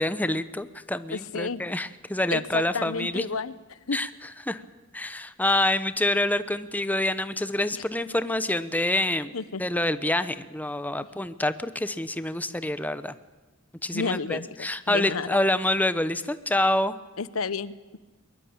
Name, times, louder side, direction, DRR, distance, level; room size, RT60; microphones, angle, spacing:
voice 1, 0.0-3.2 3.9-4.1 4.4-4.6 4.9-9.3 9.6-13.1 13.8-16.9, left 1 dB, 10° left, 12 dB, 0.9 m, -27 dB
voice 2, 1.1-1.6 2.3-3.5 3.9-4.0 9.3-9.6 13.9-15.4 17.2-18.0, left 4 dB, 80° left, 16 dB, 0.9 m, -31 dB
22.5 x 21.5 x 8.8 m, 1.2 s
head